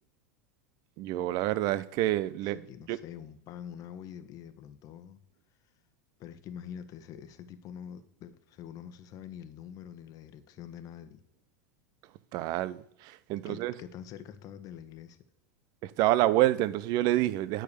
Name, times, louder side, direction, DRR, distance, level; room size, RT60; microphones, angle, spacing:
voice 1, 1.0-2.6 2.9-3.0 12.3-13.7 15.8-17.6, right 15 dB, 50° right, 0.8 m, -27 dB
voice 2, 2.4-5.2 6.2-11.2 13.4-15.2, left 9 dB, 45° left, 1.3 m, -45 dB
9.9 x 6.6 x 6.9 m
hypercardioid pair, 90°, 9 cm